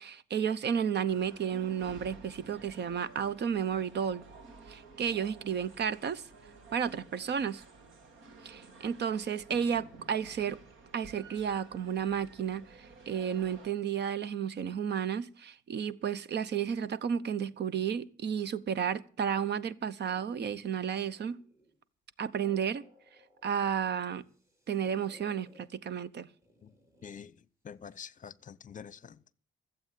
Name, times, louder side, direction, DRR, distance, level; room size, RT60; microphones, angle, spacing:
voice 1, 0.0-4.2 4.7-6.2 6.7-7.6 8.4-10.6 10.9-21.4 22.2-22.8 23.4-24.2 24.7-26.3, right 8 dB, 60° right, 1.0 m, -32 dB
sound 1, 1.1-13.7, right 3 dB, 75° right, 3.5 m, -53 dB
sound 2, 20.0-21.8 22.2-23.9 24.2-25.6 26.4-27.2, left 1 dB, 15° right, 5.5 m, -60 dB
voice 2, 27.0-27.3 27.6-29.1, left 7 dB, 40° left, 0.8 m, -46 dB
15.0 x 8.0 x 8.3 m
cardioid pair, 90°, 20 cm